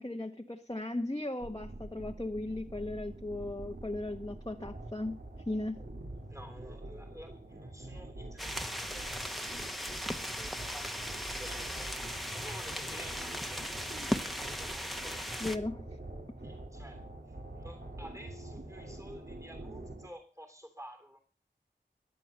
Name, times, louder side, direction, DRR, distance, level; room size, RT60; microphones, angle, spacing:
voice 1, 0.0-5.8 15.4-15.9, left 2 dB, 20° left, 1.3 m, -37 dB
sound 1, 1.4-20.1, right 1 dB, 55° right, 2.8 m, -46 dB
voice 2, 6.3-12.0 12.3-15.4 16.4-21.2, equal, 15° right, 3.0 m, -52 dB
sound 2, 8.4-15.6, equal, ahead, 1.6 m, -37 dB
17.0 x 10.5 x 6.8 m
wide cardioid pair, 40°, 19 cm